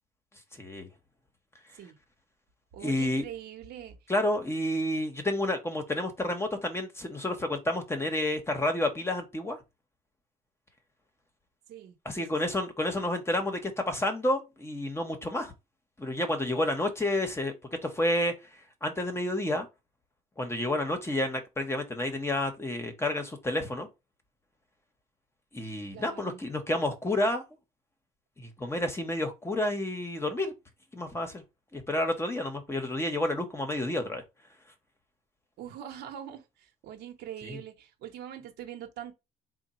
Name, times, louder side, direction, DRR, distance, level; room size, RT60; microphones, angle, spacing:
voice 1, 0.6-0.9 2.8-3.2 4.1-9.6 12.0-15.5 16.0-17.5 17.8-18.3 18.8-19.7 20.4-23.9 25.5-27.4 28.4-30.5 30.9-31.4 31.7-34.2 37.4-37.6, left 1 dB, 15° left, 0.9 m, -30 dB
voice 2, 2.7-4.0 11.7-12.5 25.9-26.4 35.6-39.1, right 10 dB, 75° right, 1.1 m, -43 dB
3.6 x 2.2 x 4.2 m
cardioid pair, 110°, 17 cm